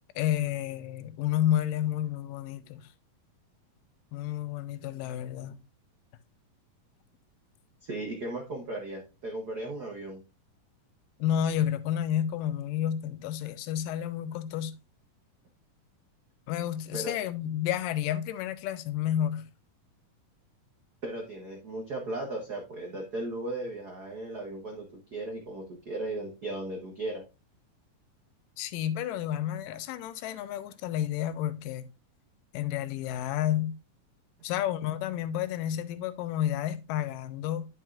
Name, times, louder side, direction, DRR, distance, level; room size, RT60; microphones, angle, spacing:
voice 1, 0.2-2.9 4.1-5.6 11.2-14.7 16.5-19.5 28.6-31.9 32.5-33.7 34.4-37.7, left 11 dB, 85° left, 2.3 m, -30 dB
voice 2, 7.8-10.2 16.9-17.1 21.0-27.2, right 2 dB, 75° right, 0.9 m, -36 dB
11.0 x 5.4 x 2.5 m
omnidirectional pair, 3.9 m